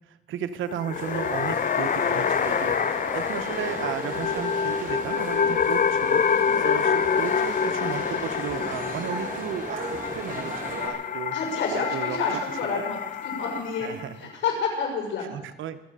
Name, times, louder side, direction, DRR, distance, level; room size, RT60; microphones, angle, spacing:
voice 1, 0.3-2.7 3.1-6.2 6.6-11.3 11.7-12.2 12.6-12.8 13.8-14.2 15.3-15.8, right 9 dB, 80° right, 11 dB, 1.1 m, -34 dB
sound 1, 0.7-14.1, left 7 dB, 45° left, 0.9 m, -27 dB
sound 2, 0.9-10.9, right 2 dB, 45° right, 4.2 m, -36 dB
voice 2, 11.3-15.3, left 4 dB, 70° left, 1 dB, 6.3 m, -30 dB
24.5 x 8.5 x 6.8 m, 1.0 s
cardioid pair, 90°, 20 cm